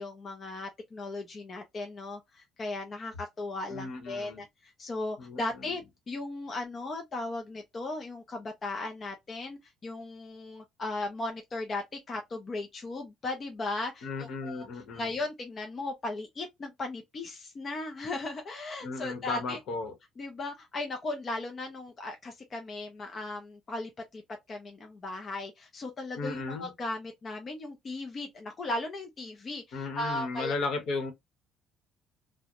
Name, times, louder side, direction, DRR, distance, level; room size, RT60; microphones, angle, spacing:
voice 1, 0.0-14.7 14.9-19.6 20.2-24.2 24.5-30.5, left 2 dB, 30° left, 0.4 m, -37 dB
voice 2, 3.7-4.4 5.2-5.4 14.0-15.1 18.8-19.9 26.2-26.7 29.7-31.1, left 3 dB, 65° left, 0.9 m, -35 dB
2.4 x 2.1 x 2.8 m
cardioid pair, 145°, 0 cm